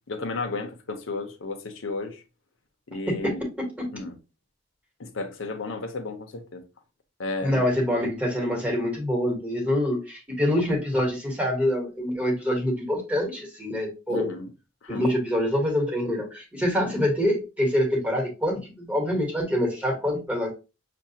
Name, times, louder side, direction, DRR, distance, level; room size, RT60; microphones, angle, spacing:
voice 1, 0.1-2.2 2.9-3.4 3.9-4.2 5.0-6.6 7.2-7.8 14.1-14.5 14.8-15.1, left 3 dB, 80° left, 0.7 m, -33 dB
voice 2, 3.1-3.9 7.4-14.3 14.9-20.5, left 1 dB, 5° right, 1.2 m, -25 dB
6.0 x 2.2 x 2.8 m
head